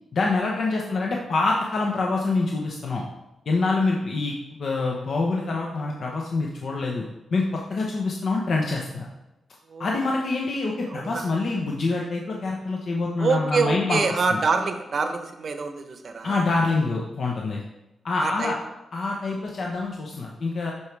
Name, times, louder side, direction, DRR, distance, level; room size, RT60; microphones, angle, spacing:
voice 1, 0.1-3.0 3.5-7.0 7.3-9.1 9.8-14.0 14.3-14.4 16.2-17.6 18.0-18.6 18.9-20.7, left 3 dB, 60° left, -1 dB, 0.9 m, -26 dB
voice 2, 10.9-11.5 13.2-16.4 18.2-18.5, right 4 dB, 50° right, 7 dB, 0.8 m, -26 dB
11.0 x 4.6 x 3.3 m, 0.99 s
cardioid pair, 105°, 0 cm